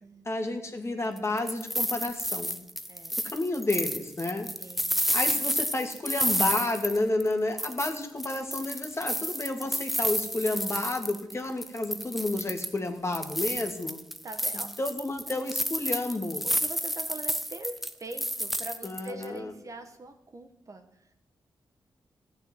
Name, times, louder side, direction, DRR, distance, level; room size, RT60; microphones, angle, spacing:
voice 1, 0.3-2.6 3.3-4.5 5.1-14.0 14.8-16.4 18.8-19.5, left 2 dB, 35° left, 4 dB, 2.3 m, -31 dB
sound 1, 1.2-7.3 7.6-11.3 11.6-12.8 13.1-19.2, equal, ahead, 0.7 m, -31 dB
voice 2, 2.9-3.2 4.6-4.9 5.3-5.5 9.7-9.8 14.2-14.8 15.3-15.4 16.4-21.1, right 2 dB, 40° right, 6 dB, 1.6 m, -43 dB
15.0 x 6.7 x 9.9 m, 0.83 s
cardioid pair, 80°, 8 cm